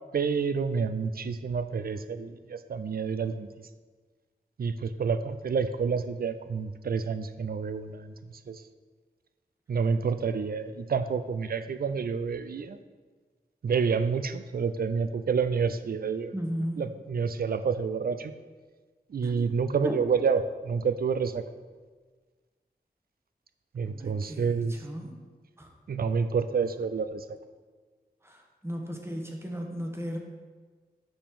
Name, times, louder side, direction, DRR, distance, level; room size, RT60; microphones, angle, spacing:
voice 1, 0.1-3.5 4.6-8.1 8.5-8.6 9.7-12.8 13.6-16.3 16.8-18.3 19.1-21.4 23.7-24.8 25.9-27.2, right 5 dB, 65° right, 11 dB, 0.4 m, -28 dB
voice 2, 16.3-16.8 19.2-19.5 19.8-20.0 23.9-25.1 25.6-25.7 28.2-30.2, equal, 15° right, 2 dB, 1.0 m, -35 dB
7.0 x 5.2 x 3.7 m, 1.4 s
wide cardioid pair, 65°, 17 cm